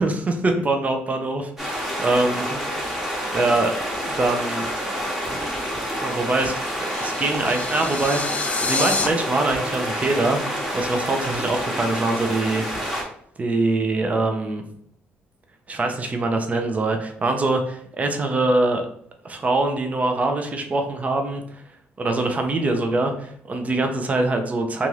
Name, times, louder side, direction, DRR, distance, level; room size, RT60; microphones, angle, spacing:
voice 1, 0.0-2.6 2.9-3.7 4.1-4.6 6.0-6.5 7.0-12.6 13.4-14.6 15.7-18.8 19.2-21.4 22.0-24.9, right 2 dB, 30° right, 5 dB, 0.5 m, -23 dB
sound 1, 1.6-13.0, equal, 5° right, 1.0 m, -28 dB
sound 2, 6.6-9.1, left 4 dB, 30° left, 0.4 m, -28 dB
2.6 x 2.4 x 3.2 m, 0.64 s
cardioid pair, 75°, 5 cm